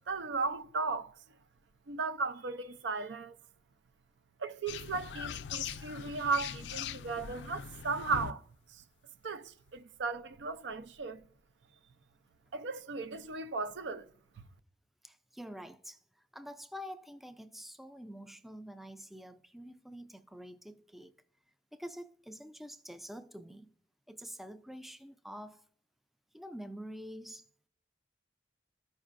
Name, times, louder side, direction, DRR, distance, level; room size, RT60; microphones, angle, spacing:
voice 1, 0.1-1.1 1.9-3.4 4.4-8.4 8.7-8.8 9.2-11.2 12.5-14.1, right 4 dB, 85° right, 0.5 m, -36 dB
sound 1, 4.7-8.3, left 8 dB, 80° left, 0.3 m, -41 dB
voice 2, 15.0-21.2 21.7-23.7 24.1-25.7 26.3-27.5, equal, ahead, 0.3 m, -47 dB
14.0 x 5.4 x 2.5 m
head